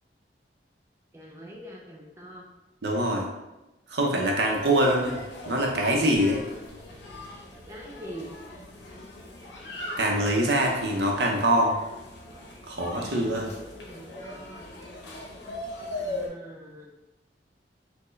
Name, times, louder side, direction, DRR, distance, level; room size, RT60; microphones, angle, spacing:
voice 1, 1.1-2.4 7.7-8.3 13.2-14.7 16.0-16.9, equal, 15° right, -2 dB, 0.5 m, -44 dB
voice 2, 2.8-3.3 3.9-5.2 5.5-6.4 10.0-11.7 12.7-13.5, right 1 dB, 70° right, 0 dB, 0.7 m, -24 dB
sound 1, 4.4-16.3, left 1 dB, 85° left, 0.8 m, -40 dB
4.4 x 2.2 x 3.1 m, 0.99 s
head